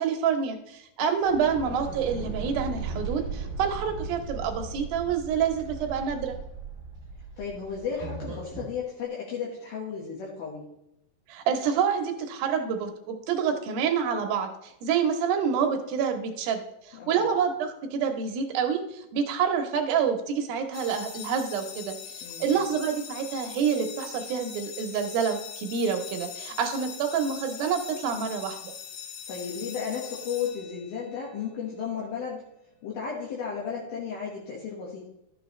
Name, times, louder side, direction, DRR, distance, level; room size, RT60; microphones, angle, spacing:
voice 1, 0.0-6.3 11.3-28.7, right 7 dB, 75° right, 5 dB, 2.6 m, -27 dB
sound 1, 1.2-8.7, right 4 dB, 35° right, 0.8 m, -37 dB
voice 2, 7.4-10.7 16.9-17.3 22.2-22.7 29.3-32.4 32.8-35.1, left 6 dB, 70° left, -4 dB, 3.2 m, -34 dB
sound 2, 20.7-31.2, left 8 dB, 85° left, 3.2 m, -41 dB
12.5 x 7.3 x 3.2 m, 0.82 s
omnidirectional pair, 4.6 m